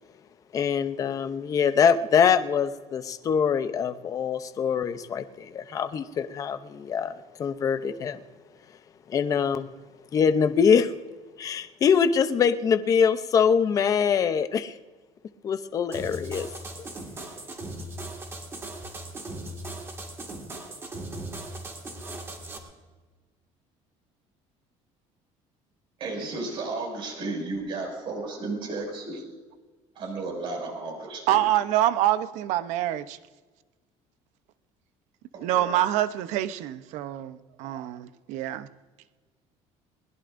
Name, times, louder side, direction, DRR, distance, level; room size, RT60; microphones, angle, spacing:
voice 1, 0.5-8.2 9.1-9.7 10.1-10.9 11.4-14.7 15.4-16.5, left 7 dB, 25° left, 0.6 m, -24 dB
sound 1, 15.9-22.6, right 2 dB, 20° right, 1.9 m, -38 dB
voice 2, 26.0-29.2 29.9-31.4 35.5-35.6, right 3 dB, 40° right, 6.1 m, -33 dB
voice 3, 31.3-33.2 35.4-38.7, right 13 dB, 70° right, 0.8 m, -26 dB
21.5 x 20.5 x 2.6 m
cardioid pair, 175°, 13 cm